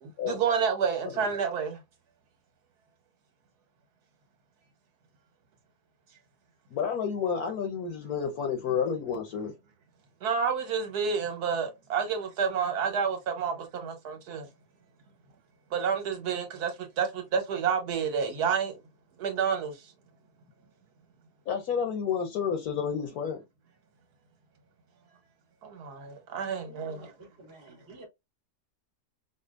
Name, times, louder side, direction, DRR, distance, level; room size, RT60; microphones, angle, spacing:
voice 1, 0.0-1.8 10.2-14.5 15.7-18.8 19.2-19.7 25.6-27.1, right 6 dB, 80° right, 1.6 m, -29 dB
voice 2, 6.7-9.5 21.5-23.4, left 7 dB, 70° left, 1.3 m, -30 dB
voice 3, 26.4-28.1, right 1 dB, 45° right, 1.5 m, -50 dB
5.1 x 2.2 x 2.4 m
omnidirectional pair, 1.7 m